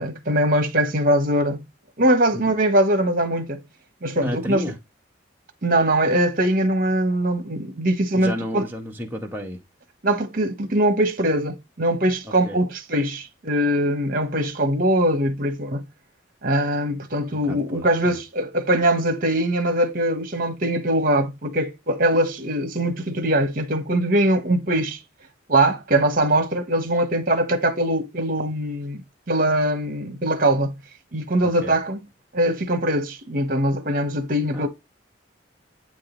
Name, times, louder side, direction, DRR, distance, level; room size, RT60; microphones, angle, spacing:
voice 1, 0.0-1.6 2.0-3.6 4.0-4.6 5.6-8.6 10.0-15.9 16.4-25.0 25.5-30.7 31.1-32.0 32.3-34.7, right 1 dB, 50° right, 1.4 m, -22 dB
voice 2, 4.2-4.7 8.1-9.6 12.2-12.6 17.5-18.2 31.4-31.7 34.5-34.7, equal, 10° right, 1.6 m, -32 dB
8.8 x 4.0 x 4.0 m
head